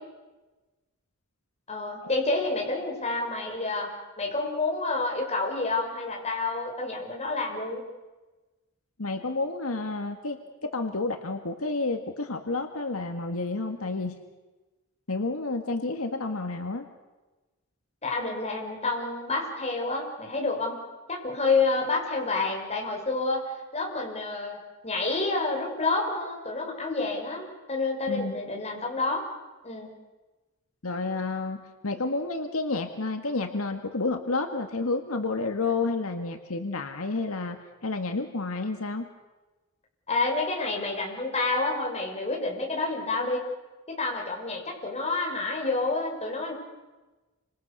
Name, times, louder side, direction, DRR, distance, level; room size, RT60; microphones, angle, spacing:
voice 1, 1.7-3.9 4.2-7.8 18.0-20.8 21.1-23.5 23.7-29.2 29.6-29.9 40.1-43.4 43.9-46.5, left 3 dB, 30° left, 1 dB, 6.2 m, -29 dB
voice 2, 9.0-14.2 15.1-16.9 28.1-28.4 30.8-39.1, left 3 dB, 85° left, 6 dB, 1.9 m, -30 dB
29.5 x 26.0 x 6.9 m, 1.2 s
head